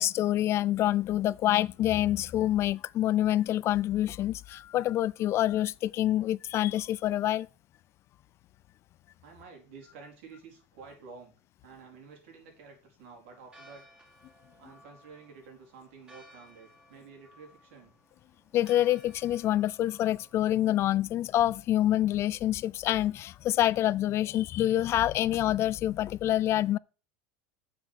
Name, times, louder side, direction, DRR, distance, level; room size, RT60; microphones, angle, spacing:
voice 1, 0.0-7.5 18.5-26.8, left 13 dB, 40° left, 0.3 m, -27 dB
voice 2, 9.2-11.3 11.6-13.8 14.6-17.9, right 5 dB, 75° right, 4.1 m, -50 dB
Church bell, 13.4-22.3, equal, 15° right, 2.9 m, -59 dB
7.3 x 6.4 x 6.4 m
supercardioid pair, 110°, 7 cm